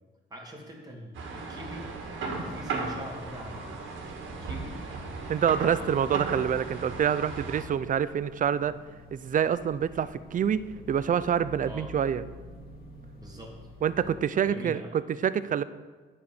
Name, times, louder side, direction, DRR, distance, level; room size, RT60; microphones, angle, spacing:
voice 1, 0.3-1.9 2.3-4.8 5.6-5.9 11.6-11.9 13.2-13.6 13.9-14.9, equal, 20° right, -2 dB, 2.2 m, -44 dB
sound 1, 1.1-7.6, right 4 dB, 75° right, 1.8 m, -36 dB
sound 2, 1.9-14.2, left 2 dB, 50° left, 2.0 m, -49 dB
voice 2, 5.3-8.7 9.1-10.6 10.9-12.2 13.8-15.6, right 8 dB, 40° right, 15 dB, 0.5 m, -26 dB
8.6 x 6.3 x 7.4 m, 1.4 s
cardioid pair, 90°, 20 cm